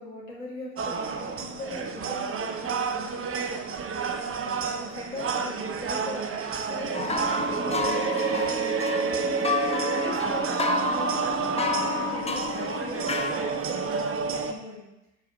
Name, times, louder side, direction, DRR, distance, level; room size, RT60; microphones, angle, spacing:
voice 1, 0.0-11.2 11.5-14.8, left 2 dB, 90° left, -5 dB, 2.1 m, -41 dB
sound 1, 0.8-14.5, right 5 dB, 35° right, 0.8 m, -30 dB
sound 2, 6.9-13.8, left 3 dB, 15° left, 0.8 m, -30 dB
7.4 x 6.9 x 3.1 m, 0.94 s
hypercardioid pair, 55°, 39 cm